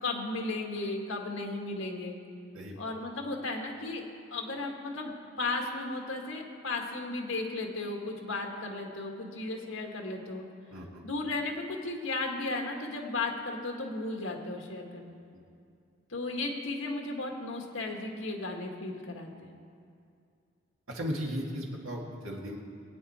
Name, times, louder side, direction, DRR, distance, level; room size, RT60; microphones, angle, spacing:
voice 1, 0.0-2.2 2.8-4.0 4.3-5.1 5.4-10.4 11.0-15.2 16.1-19.5, left 2 dB, 85° left, 2 dB, 1.8 m, -35 dB
voice 2, 10.7-11.0 15.3-15.4 20.9-22.6, equal, 85° right, -1 dB, 2.0 m, -36 dB
21.5 x 9.1 x 4.3 m, 2.4 s
head